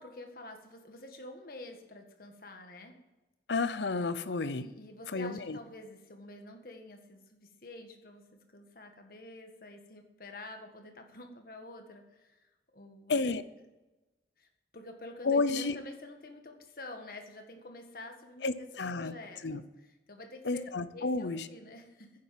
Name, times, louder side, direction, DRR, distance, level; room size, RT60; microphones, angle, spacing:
voice 1, 0.0-2.9 4.6-13.3 14.4-14.5 14.7-20.6 20.9-22.1, left 2 dB, 55° left, 4 dB, 1.6 m, -48 dB
voice 2, 3.5-4.7 5.1-5.6 13.1-13.4 15.2-15.8 18.4-19.1 19.4-19.6 20.4-21.5, left 3 dB, 85° left, 14 dB, 0.7 m, -31 dB
10.5 x 7.5 x 7.6 m, 1.1 s
head